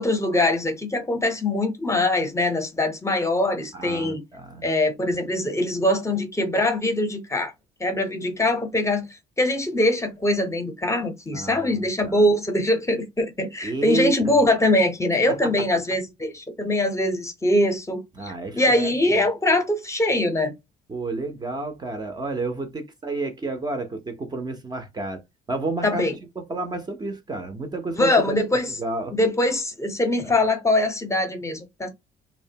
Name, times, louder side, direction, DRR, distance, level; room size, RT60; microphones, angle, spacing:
voice 1, 0.0-4.2 4.6-7.5 7.8-9.1 9.4-20.5 25.8-26.1 28.0-28.8 29.1-31.9, left 1 dB, 15° left, 0.7 m, -23 dB
voice 2, 3.7-4.6 11.3-12.3 13.6-14.4 15.3-15.5 18.2-19.2 20.9-25.2 25.5-26.1 26.4-28.4 28.8-29.2, right 2 dB, 25° right, 0.5 m, -30 dB
2.6 x 2.1 x 2.7 m
cardioid pair, 110°, 17 cm